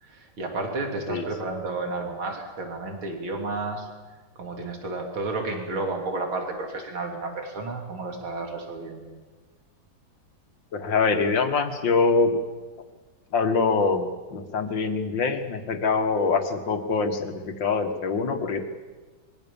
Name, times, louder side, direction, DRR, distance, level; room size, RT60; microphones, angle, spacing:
voice 1, 0.0-3.9 4.4-9.1, right 3 dB, 80° right, 2 dB, 3.9 m, -32 dB
voice 2, 10.7-12.4 13.3-18.6, left 4 dB, 65° left, 7 dB, 2.4 m, -24 dB
25.5 x 22.5 x 7.2 m, 1.3 s
omnidirectional pair, 2.2 m